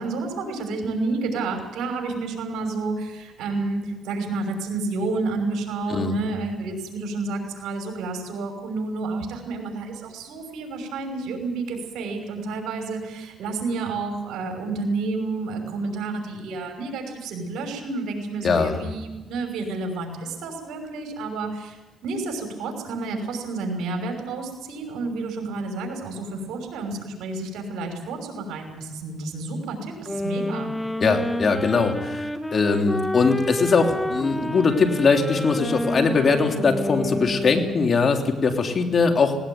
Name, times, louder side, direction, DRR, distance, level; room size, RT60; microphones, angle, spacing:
voice 1, 0.0-30.7, right 3 dB, 80° right, 3 dB, 5.9 m, -30 dB
voice 2, 18.4-18.9 31.0-39.4, left 4 dB, 45° left, 4 dB, 3.2 m, -21 dB
sound 1, 30.1-38.0, left 1 dB, 5° left, 1.6 m, -29 dB
19.0 x 18.5 x 9.5 m, 1.1 s
cardioid pair, 90°, 0 cm